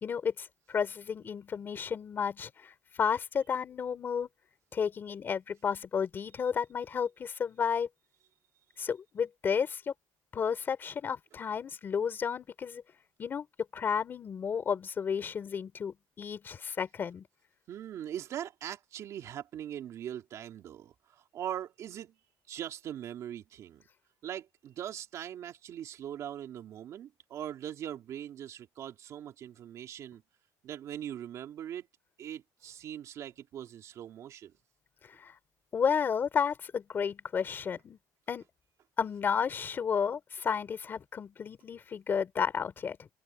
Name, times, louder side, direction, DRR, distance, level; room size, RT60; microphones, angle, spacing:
voice 1, 0.0-4.3 4.7-7.9 8.8-9.9 10.3-12.8 13.2-13.5 13.7-17.3 35.2-35.3 35.7-38.0 38.3-38.4 39.0-43.1, left 7 dB, 30° left, 3.4 m, -32 dB
voice 2, 17.7-22.1 22.5-23.8 24.2-30.2 30.6-31.9 32.2-34.5, right 10 dB, 45° right, 2.6 m, -41 dB
cardioid pair, 160°, 7 cm